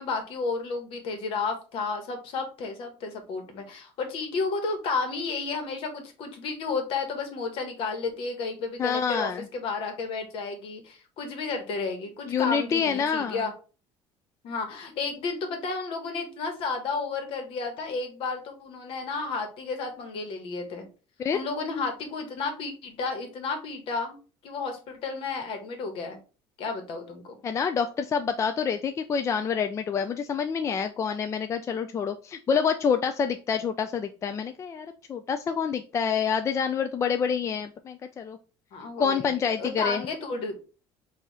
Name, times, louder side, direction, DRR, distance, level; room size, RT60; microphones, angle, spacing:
voice 1, 0.0-13.5 14.4-20.9 21.3-24.2 24.4-26.2 26.6-27.2 38.7-40.6, left 4 dB, 60° left, 6 dB, 1.4 m, -32 dB
voice 2, 8.8-9.5 12.3-13.4 21.2-21.4 27.4-38.4 39.0-40.0, left 6 dB, 30° left, 8 dB, 0.4 m, -27 dB
4.7 x 2.7 x 4.1 m, 0.35 s
cardioid pair, 120°, 10 cm